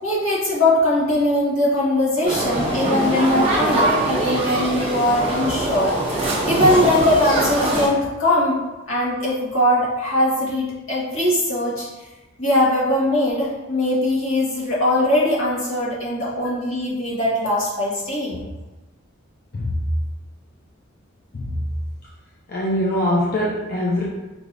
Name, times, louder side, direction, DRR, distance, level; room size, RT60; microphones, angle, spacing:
voice 1, 0.0-5.9 6.5-8.6 8.9-11.9 12.4-18.4, left 1 dB, 80° left, -7 dB, 1.4 m, -21 dB
sound 1, 2.2-7.9, right 1 dB, 25° right, 1.1 m, -22 dB
voice 2, 22.5-24.0, left 1 dB, 45° left, -5 dB, 0.5 m, -22 dB
4.8 x 3.3 x 2.5 m, 1.1 s
head